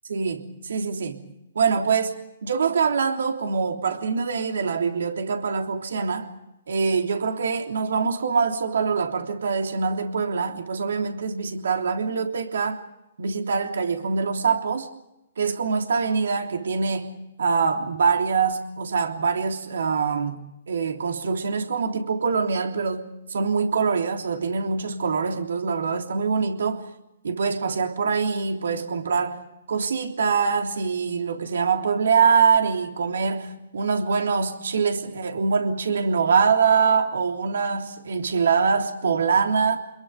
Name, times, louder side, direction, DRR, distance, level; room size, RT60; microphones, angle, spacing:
voice 1, 0.1-1.2 1.5-6.3 6.7-12.8 13.2-14.9 15.4-20.4 20.7-26.8 27.2-29.4 29.7-39.8, right 5 dB, 75° right, 3.4 m, -24 dB
28.5 x 22.0 x 5.4 m
hypercardioid pair, 135°, 0 cm